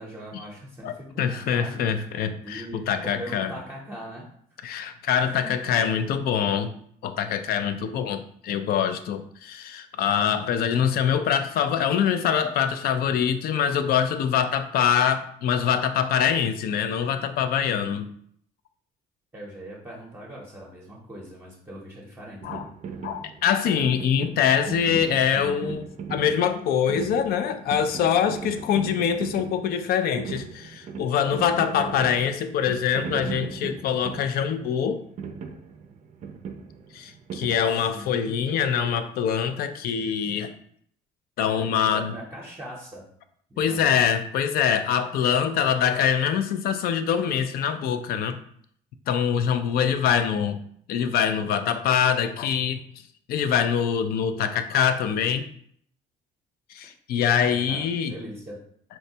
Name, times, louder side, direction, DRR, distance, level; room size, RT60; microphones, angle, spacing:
voice 1, 0.0-1.8 2.4-4.3 5.2-6.0 19.3-22.7 37.8-38.6 41.5-43.0 43.5-44.0 57.4-58.6, right 1 dB, 10° right, -4 dB, 0.7 m, -40 dB
voice 2, 0.8-3.5 4.6-6.7 7.0-18.1 22.4-22.6 23.0-35.0 36.9-40.5 41.4-42.1 43.6-48.4 49.1-50.6 50.9-52.8 53.3-55.5 56.7-58.2, left 8 dB, 65° left, 9 dB, 0.4 m, -24 dB
sound 1, 22.4-38.2, right 6 dB, 45° right, 0.4 m, -38 dB
4.2 x 2.1 x 2.7 m, 0.64 s
cardioid pair, 110°, 17 cm